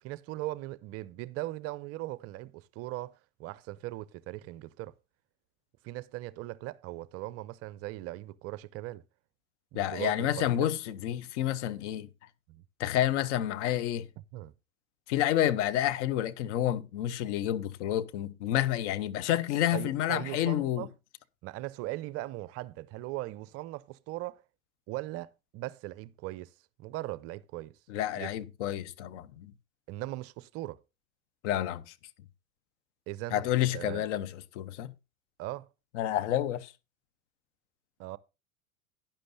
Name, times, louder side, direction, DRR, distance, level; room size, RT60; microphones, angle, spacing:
voice 1, 0.0-4.9 5.8-9.0 9.7-10.7 12.5-12.6 14.3-14.5 19.7-20.9 21.4-24.4 24.9-26.5 26.8-27.7 28.2-28.3 29.9-30.8 33.1-33.5 33.7-34.1 35.4-35.7 38.0-38.2, right 17 dB, 35° right, 0.5 m, -39 dB
voice 2, 9.7-12.1 12.8-14.1 15.1-20.9 27.9-29.5 31.4-31.9 33.3-34.9 35.9-36.7, left 12 dB, 60° left, 0.9 m, -29 dB
11.5 x 10.5 x 2.6 m
figure-of-eight pair, 80°, 41 cm